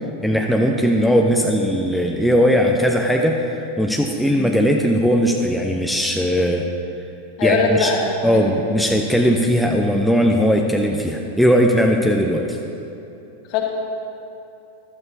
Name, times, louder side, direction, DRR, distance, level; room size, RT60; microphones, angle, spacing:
voice 1, 0.2-6.7 7.4-7.9 8.2-12.6, equal, ahead, 1 dB, 0.6 m, -18 dB
voice 2, 7.4-8.4 8.7-8.9 13.5-13.6, left 4 dB, 40° left, 0 dB, 1.7 m, -21 dB
14.5 x 12.0 x 2.8 m, 2.9 s
figure-of-eight pair, 90°, 0 cm